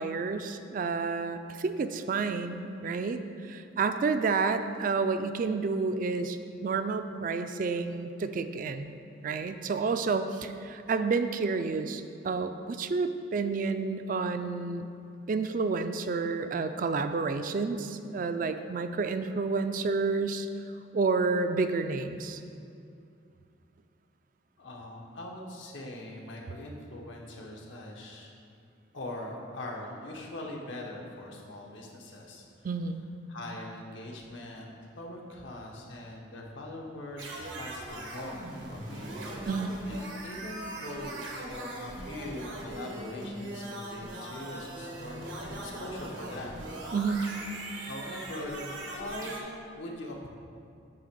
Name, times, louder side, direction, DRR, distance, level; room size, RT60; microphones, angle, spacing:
voice 1, 0.0-8.9 9.2-14.9 15.3-20.5 20.9-22.4 32.6-33.0 39.4-39.8 46.9-47.3, right 4 dB, 45° right, 9 dB, 0.3 m, -30 dB
voice 2, 24.6-28.3 28.9-32.5 33.3-39.1 39.8-46.5 47.8-50.3, left 1 dB, 85° left, -1 dB, 1.1 m, -42 dB
sound 1, 37.2-49.4, right 1 dB, 90° right, 1.3 m, -40 dB
8.8 x 3.3 x 6.6 m, 2.5 s
head